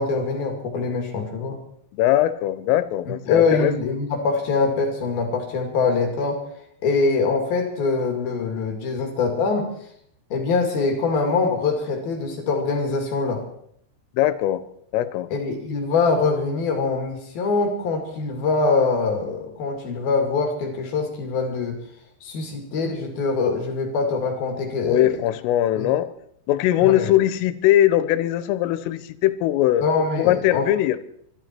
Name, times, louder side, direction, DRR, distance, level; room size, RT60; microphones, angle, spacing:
voice 1, 0.0-1.6 3.1-6.4 6.8-9.7 10.3-13.4 15.3-21.8 22.2-25.1 25.8-25.9 26.8-27.1 29.8-30.7, left 4 dB, 55° left, 3 dB, 3.7 m, -23 dB
voice 2, 1.9-3.7 14.2-14.6 14.9-15.3 24.9-26.1 26.5-29.8 30.2-31.0, left 13 dB, 85° left, 14 dB, 3.5 m, -20 dB
24.5 x 12.5 x 4.5 m, 0.70 s
omnidirectional pair, 5.9 m